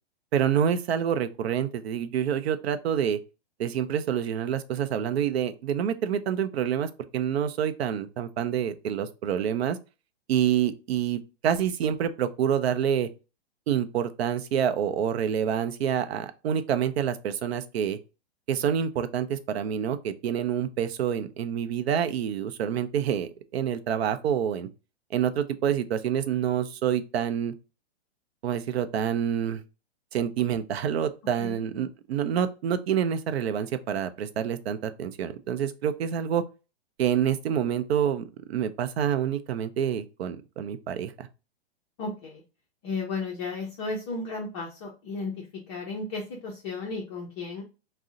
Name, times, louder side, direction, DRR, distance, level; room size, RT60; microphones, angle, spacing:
voice 1, 0.3-3.2 3.6-9.8 10.3-13.1 13.7-18.0 18.5-24.7 25.1-27.5 28.4-29.6 30.1-36.4 37.0-41.3, right 9 dB, 70° right, 0.5 m, -27 dB
voice 2, 42.0-42.4 42.8-47.6, left 3 dB, 25° left, 0.4 m, -34 dB
2.6 x 2.0 x 3.6 m
hypercardioid pair, 145°, 32 cm